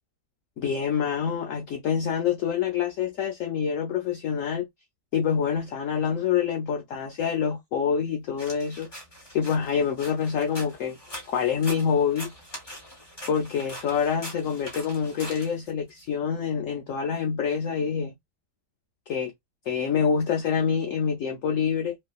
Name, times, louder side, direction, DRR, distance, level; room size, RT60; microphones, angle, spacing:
voice 1, 0.6-4.7 5.1-8.9 9.3-11.0 11.3-12.3 13.3-18.2 19.1-19.3 19.7-22.0, left 7 dB, 70° left, 0.7 m, -26 dB
sound 1, 8.4-16.0, equal, 15° left, 1.0 m, -43 dB
3.0 x 2.6 x 2.4 m
omnidirectional pair, 1.9 m